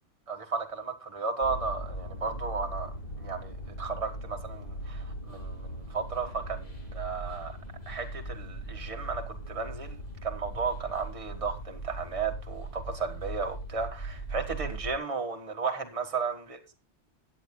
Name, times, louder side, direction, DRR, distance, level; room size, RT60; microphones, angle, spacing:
voice 1, 0.3-2.9 3.2-7.6 7.9-16.7, right 5 dB, 30° right, 1.7 m, -34 dB
sound 1, 1.4-15.0, right 1 dB, 35° left, 2.6 m, -39 dB
21.0 x 8.8 x 2.2 m
omnidirectional pair, 1.2 m